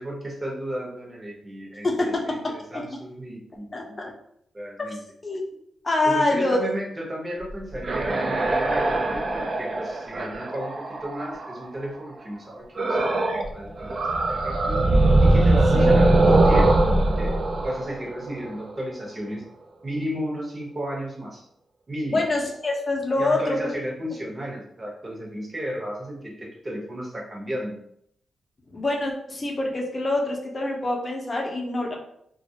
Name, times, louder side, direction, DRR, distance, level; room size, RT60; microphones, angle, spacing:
voice 1, 0.0-4.0 4.5-5.0 6.0-14.0 14.3-14.8 15.2-17.3 17.6-19.4 19.8-21.5 21.9-22.2 23.2-27.8, equal, 30° right, -2 dB, 0.8 m, -34 dB
voice 2, 1.8-2.5 3.7-4.1 5.2-5.4 5.8-6.6 15.7-16.0 22.1-23.7 28.7-31.9, left 2 dB, 35° left, 0 dB, 0.6 m, -25 dB
sound 1, 7.5-11.7 12.8-13.5 13.8-18.7, right 2 dB, 50° right, 0.3 m, -21 dB
2.3 x 2.0 x 2.7 m, 0.72 s
cardioid pair, 70°, 0 cm